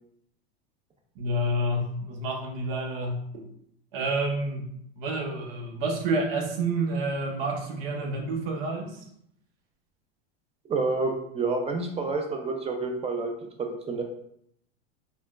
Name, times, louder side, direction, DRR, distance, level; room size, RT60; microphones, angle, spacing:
voice 1, 1.2-3.4 3.9-4.7 5.0-9.0, right 2 dB, 70° right, 2 dB, 0.9 m, -29 dB
voice 2, 10.7-13.3 13.6-14.0, right 3 dB, 20° right, 3 dB, 0.5 m, -28 dB
4.2 x 2.1 x 2.4 m, 0.71 s
hypercardioid pair, 100°, 30 cm